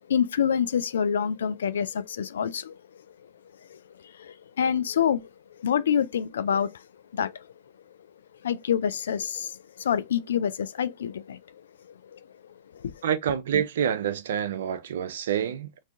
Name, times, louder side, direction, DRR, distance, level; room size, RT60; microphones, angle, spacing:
voice 1, 0.1-2.8 3.7-3.8 4.2-5.2 5.6-6.7 7.1-7.4 8.4-11.4 12.1-12.2 12.8-12.9, left 8 dB, 80° left, 0.3 m, -26 dB
voice 2, 13.0-15.8, right 8 dB, 75° right, 0.3 m, -27 dB
2.6 x 2.4 x 3.5 m
hypercardioid pair, 110°, 0 cm